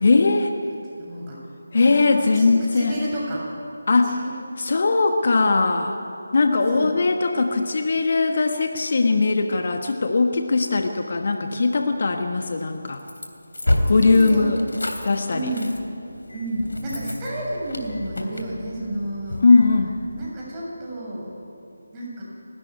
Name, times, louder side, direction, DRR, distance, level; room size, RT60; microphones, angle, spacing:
voice 1, 0.0-0.5 1.7-3.0 3.9-4.2 4.6-6.0 6.3-13.0 13.9-14.6 15.0-15.5 19.4-20.0, left 3 dB, 45° left, 5 dB, 1.5 m, -20 dB
voice 2, 0.9-1.4 1.8-2.0 2.3-3.4 4.2-4.3 6.7-6.9 14.0-14.5 15.3-15.7 16.3-19.4 20.1-21.3 21.9-22.2, right 1 dB, 15° right, -5 dB, 6.9 m, -31 dB
sound 1, 12.6-20.3, left 1 dB, 70° left, 3.1 m, -30 dB
30.0 x 13.5 x 9.6 m, 2.7 s
figure-of-eight pair, 160°, 0 cm